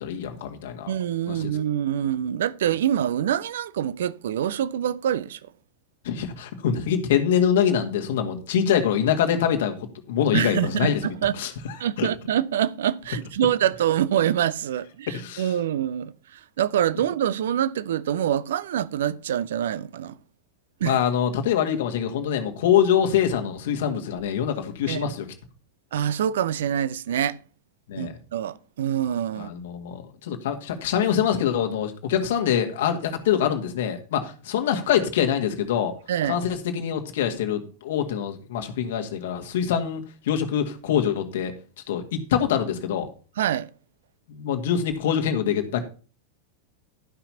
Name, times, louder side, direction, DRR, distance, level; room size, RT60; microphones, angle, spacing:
voice 1, 0.0-0.9 1.3-1.5 6.0-11.1 11.4-12.1 15.1-15.6 20.8-25.3 27.9-28.2 29.4-35.9 36.2-41.5 41.9-43.1 44.3-45.8, left 8 dB, 55° left, 1.9 m, -24 dB
voice 2, 0.9-5.4 10.3-11.3 11.8-20.2 20.8-21.0 24.9-25.1 25.9-27.4 28.0-29.5 36.1-36.4 43.4-43.7, right 10 dB, 60° right, 0.6 m, -25 dB
12.5 x 5.9 x 5.6 m
figure-of-eight pair, 90°, 0 cm